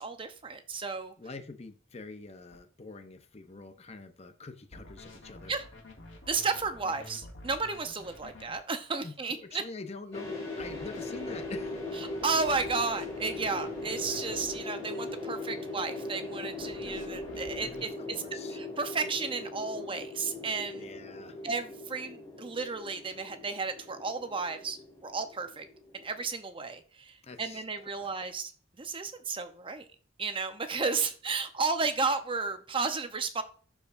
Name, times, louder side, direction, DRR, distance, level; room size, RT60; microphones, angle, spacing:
voice 1, 0.0-1.1 5.5-5.6 6.3-9.6 12.2-18.2 18.5-20.9 21.4-25.7 25.9-28.5 28.8-29.9 30.2-33.4, right 4 dB, 25° right, 8 dB, 0.7 m, -33 dB
voice 2, 1.2-5.5 9.0-11.8 18.0-18.6 20.8-21.4 27.2-27.6 27.9-28.1, left 3 dB, 35° left, 8 dB, 0.7 m, -45 dB
sound 1, 2.5-2.6 4.7-8.6 10.6-14.6 16.6-17.9, left 1 dB, 75° left, 2.2 m, -49 dB
sound 2, 10.1-26.3, left 2 dB, 15° left, 3.3 m, -40 dB
12.0 x 4.8 x 2.6 m, 0.41 s
head